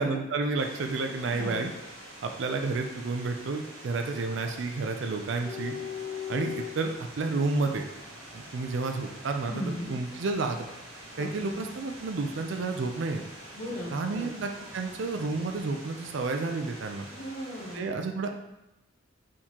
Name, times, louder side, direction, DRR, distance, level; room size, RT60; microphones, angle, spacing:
voice 1, 0.0-1.7 2.2-5.7 6.3-7.8 8.3-10.6 11.2-13.2 13.9-17.1 17.7-18.3, right 3 dB, 60° right, 5 dB, 0.4 m, -30 dB
sound 1, 0.6-17.8, right 1 dB, 80° right, 1.2 m, -47 dB
voice 2, 1.3-1.6 9.4-9.9 11.2-11.6 13.5-14.3 17.1-17.9, equal, 40° left, -3 dB, 1.0 m, -37 dB
sound 2, 5.4-15.8, left 8 dB, 10° left, 0.5 m, -45 dB
4.4 x 3.6 x 2.9 m, 0.92 s
head